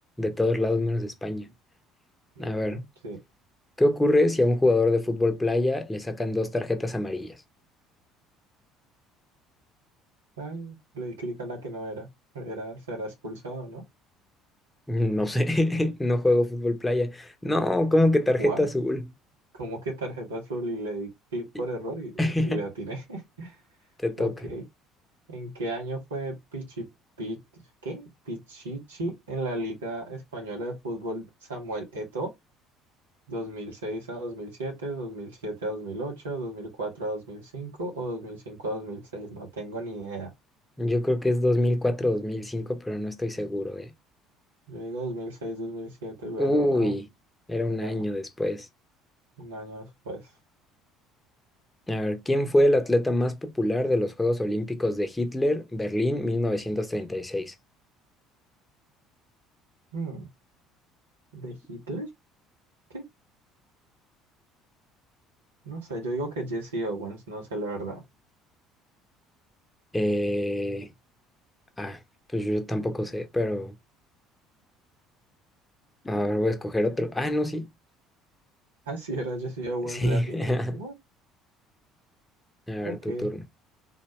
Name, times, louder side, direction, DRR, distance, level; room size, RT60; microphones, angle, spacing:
voice 1, 0.2-1.5 2.4-2.8 3.8-7.4 14.9-19.0 22.2-22.6 24.0-24.3 40.8-43.9 46.4-47.1 47.5-48.7 51.9-57.5 69.9-70.9 71.8-72.0 72.3-73.8 76.0-77.7 79.9-80.8 82.7-83.4, left 1 dB, 15° left, 0.9 m, -25 dB
voice 2, 2.3-3.2 10.4-12.1 12.3-13.8 18.4-18.6 19.5-23.6 24.2-24.7 25.3-26.9 27.2-32.3 33.3-40.3 44.7-46.9 47.7-48.0 49.4-50.3 59.9-60.3 61.3-62.1 62.9-63.0 65.6-68.0 78.9-80.9 82.8-83.3, right 1 dB, 80° right, 1.6 m, -35 dB
4.0 x 2.9 x 3.2 m
figure-of-eight pair, 60°, 0 cm